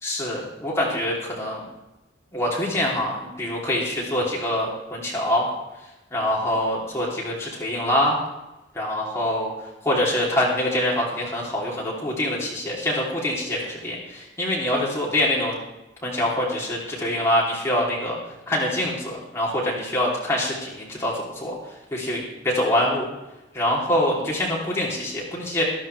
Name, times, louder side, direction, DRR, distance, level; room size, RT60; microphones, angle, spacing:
voice 1, 0.0-1.6 2.3-5.5 6.1-8.2 8.7-9.5 9.8-15.5 16.0-18.2 18.5-21.5 21.9-23.1 23.5-25.6, left 1 dB, 15° left, -5 dB, 2.9 m, -25 dB
13.5 x 13.5 x 3.3 m, 0.98 s
head